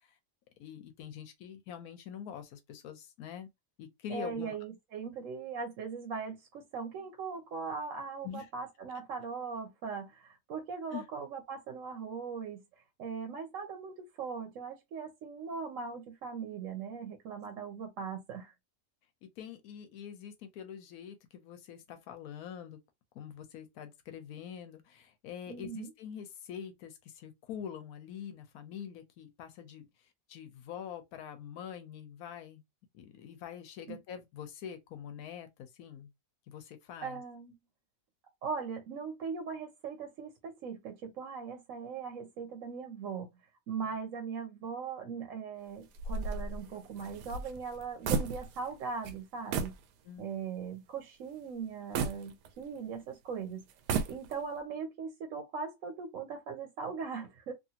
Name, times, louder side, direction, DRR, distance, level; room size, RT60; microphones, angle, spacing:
voice 1, 0.6-3.5 3.8-4.6 8.2-8.5 10.9-11.0 19.2-22.8 23.1-29.9 30.3-32.6 32.9-36.1 36.5-37.2 43.8-43.9 50.0-50.3, left 8 dB, 70° left, 1.1 m, -45 dB
voice 2, 4.1-12.6 13.0-18.5 25.5-25.9 33.9-34.0 37.0-37.5 38.4-43.3 43.7-49.7 50.2-53.6 54.1-57.5, right 5 dB, 65° right, 0.9 m, -39 dB
sound 1, 45.9-48.8 49.0-49.2 49.5-49.8 50.3-50.4 51.9-52.9 53.7-54.6, right 5 dB, 85° right, 1.2 m, -34 dB
3.0 x 2.5 x 2.8 m
omnidirectional pair, 1.7 m